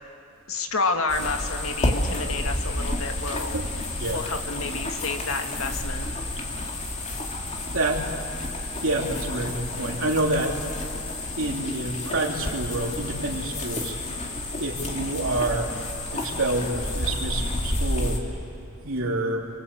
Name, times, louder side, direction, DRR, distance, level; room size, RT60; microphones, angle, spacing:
voice 1, 0.5-3.6 4.1-6.0, left 3 dB, 70° left, 5 dB, 2.0 m, -29 dB
sound 1, 1.1-18.2, left 1 dB, 35° left, 2.6 m, -30 dB
voice 2, 8.8-10.6 11.3-14.0 14.6-15.7 16.1-18.2 18.8-19.4, right 2 dB, 65° right, 0 dB, 3.4 m, -27 dB
29.0 x 23.5 x 8.4 m, 2.6 s
head